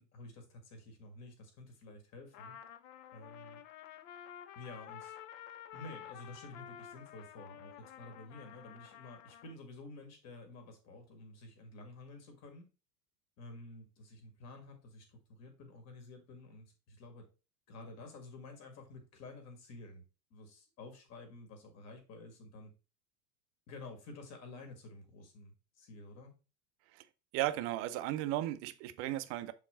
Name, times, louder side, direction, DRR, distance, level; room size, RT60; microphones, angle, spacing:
voice 1, 0.0-2.6 3.1-3.6 4.6-5.2 5.7-12.7 13.4-17.3 17.7-20.0 20.3-22.7 23.7-26.3, left 2 dB, 30° left, 1.9 m, -51 dB
Trumpet, 2.3-9.6, left 10 dB, 50° left, 0.7 m, -51 dB
voice 2, 27.3-29.5, right 14 dB, 30° right, 0.5 m, -35 dB
7.0 x 3.8 x 4.2 m
figure-of-eight pair, 85°, 48 cm